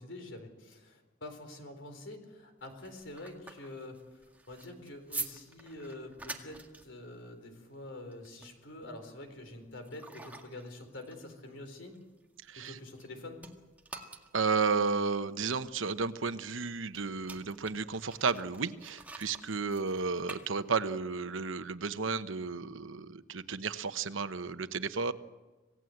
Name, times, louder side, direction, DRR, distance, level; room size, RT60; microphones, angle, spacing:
voice 1, 0.0-4.2 4.5-12.0 12.6-13.4, left 1 dB, 70° left, 6 dB, 4.2 m, -46 dB
Drinking soda, 2.6-13.1 13.4-21.1, right 3 dB, 10° right, 1.9 m, -47 dB
voice 2, 12.5-12.8 14.3-25.1, right 4 dB, 80° right, 11 dB, 1.0 m, -33 dB
27.0 x 17.5 x 7.9 m, 1.2 s
head